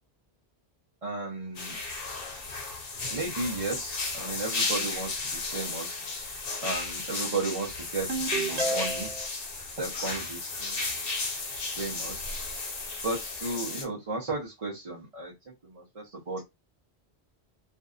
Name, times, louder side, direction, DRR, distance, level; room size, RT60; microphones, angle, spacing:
voice 1, 1.0-1.8 3.1-5.2 5.5-6.0 6.6-9.1 9.8-10.9 11.8-12.3 13.0-15.3 15.6-16.4, right 3 dB, 40° right, -5 dB, 0.7 m, -34 dB
sound 1, 1.5-13.8, left 3 dB, 60° left, 1.0 m, -34 dB
Ringtone, 8.1-9.3, right 3 dB, 70° right, 1.0 m, -31 dB
2.6 x 2.5 x 2.4 m, 0.20 s
omnidirectional pair, 1.1 m